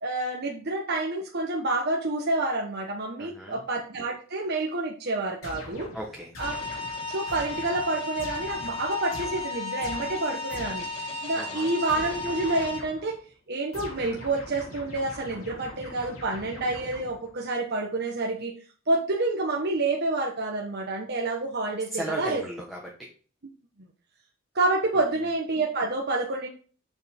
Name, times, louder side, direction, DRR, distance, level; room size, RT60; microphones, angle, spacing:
voice 1, 0.0-5.9 6.4-6.5 7.1-10.9 11.2-13.2 13.5-18.5 18.9-22.4 24.5-26.5, right 2 dB, 50° right, -1 dB, 1.2 m, -28 dB
voice 2, 3.2-3.6 5.9-6.3 11.3-11.7 21.9-23.1, equal, ahead, -2 dB, 1.2 m, -36 dB
sound 1, 5.4-11.0 11.9-13.2 13.7-17.4, left 1 dB, 80° left, 3.5 m, -43 dB
sound 2, 6.4-12.8, left 3 dB, 30° left, 3.5 m, -34 dB
7.3 x 6.4 x 3.5 m, 0.40 s
head